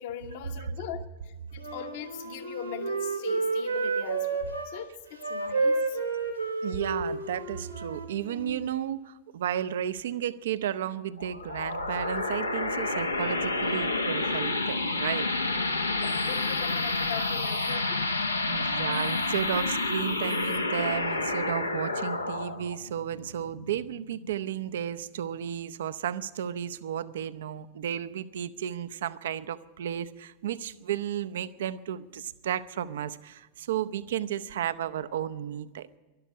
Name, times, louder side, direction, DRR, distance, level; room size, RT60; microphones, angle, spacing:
voice 1, 0.0-6.0 15.9-18.2, left 9 dB, 50° left, 1.1 m, -40 dB
Wind instrument woodwind instrument, 1.6-4.7 5.1-8.6, right 3 dB, 85° right, 2.5 m, -31 dB
voice 2, 6.6-15.3 18.5-35.9, right 10 dB, 60° right, 0.6 m, -33 dB
sound 1, 11.2-24.3, left 2 dB, 85° left, 0.9 m, -29 dB
12.5 x 12.0 x 8.6 m
figure-of-eight pair, 90°, 0 cm